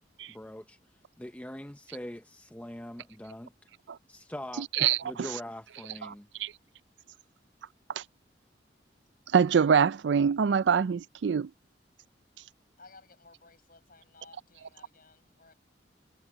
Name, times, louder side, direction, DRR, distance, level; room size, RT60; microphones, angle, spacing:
voice 1, 0.3-0.8 1.2-3.5 4.1-4.7 5.0-6.5, left 1 dB, 10° left, 0.7 m, -42 dB
voice 2, 4.8-5.3 6.4-6.5 8.0-8.1 9.3-11.5, right 7 dB, 75° right, 0.4 m, -24 dB
voice 3, 12.8-15.5, left 3 dB, 50° left, 7.7 m, -57 dB
head